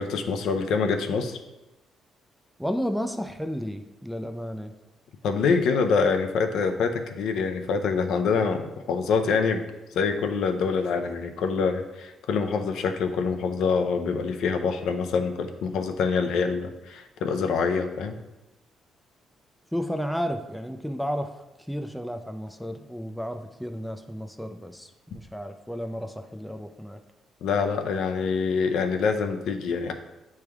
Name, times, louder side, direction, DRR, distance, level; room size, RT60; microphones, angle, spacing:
voice 1, 0.0-1.4 5.2-9.6 9.9-18.2 27.4-29.9, left 5 dB, 75° left, 6 dB, 0.5 m, -25 dB
voice 2, 2.6-4.7 19.7-21.3 21.7-27.0, equal, ahead, 6 dB, 0.4 m, -32 dB
8.2 x 3.3 x 3.5 m, 0.99 s
cardioid pair, 130°, 0 cm